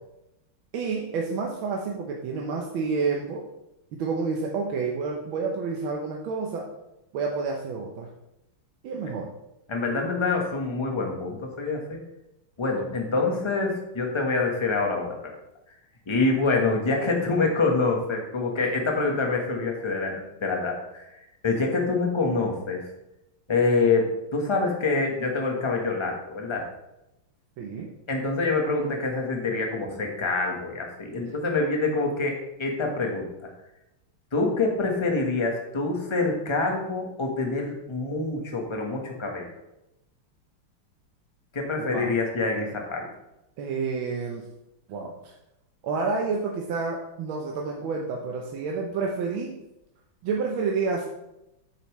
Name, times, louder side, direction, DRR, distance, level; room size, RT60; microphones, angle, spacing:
voice 1, 0.7-3.4 4.0-6.7 7.1-8.1 8.8-9.3 27.6-27.9 41.8-42.1 43.6-44.5 44.9-45.3 45.8-49.5 50.2-51.1, right 4 dB, 70° right, 0 dB, 1.5 m, -29 dB
voice 2, 9.7-12.0 12.6-15.2 16.1-21.1 21.4-22.9 23.5-26.6 28.1-33.3 34.3-39.5 41.5-43.1, left 3 dB, 20° left, 1 dB, 0.7 m, -26 dB
8.4 x 6.8 x 3.1 m, 0.89 s
omnidirectional pair, 2.4 m